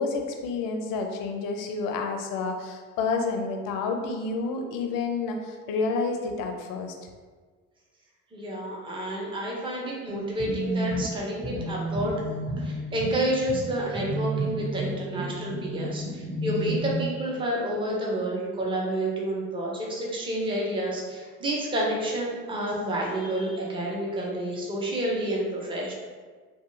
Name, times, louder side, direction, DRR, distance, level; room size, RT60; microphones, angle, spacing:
voice 1, 0.0-6.9, left 4 dB, 50° left, 4 dB, 0.5 m, -29 dB
voice 2, 8.3-25.9, right 1 dB, 10° right, -3 dB, 0.6 m, -29 dB
sound 1, 10.1-16.9, right 1 dB, 85° right, 1.3 m, -32 dB
2.8 x 2.3 x 2.5 m, 1.5 s
figure-of-eight pair, 55°, 45 cm